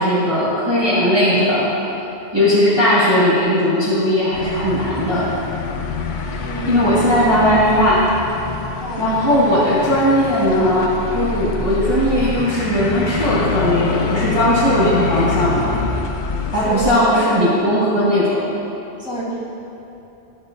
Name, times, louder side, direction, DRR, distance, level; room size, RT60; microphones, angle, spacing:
voice 1, 0.0-1.7 2.3-5.3 6.4-8.1 9.0-15.8 16.5-18.5, equal, 25° right, -12 dB, 1.5 m, -17 dB
sound 1, 4.3-16.9, left 5 dB, 55° left, 0.6 m, -26 dB
voice 2, 6.4-7.1 7.3-7.7 8.8-9.1 16.5-17.8 19.0-19.6, right 1 dB, 5° right, -9 dB, 1.8 m, -29 dB
13.5 x 6.4 x 2.5 m, 2.9 s
omnidirectional pair, 1.1 m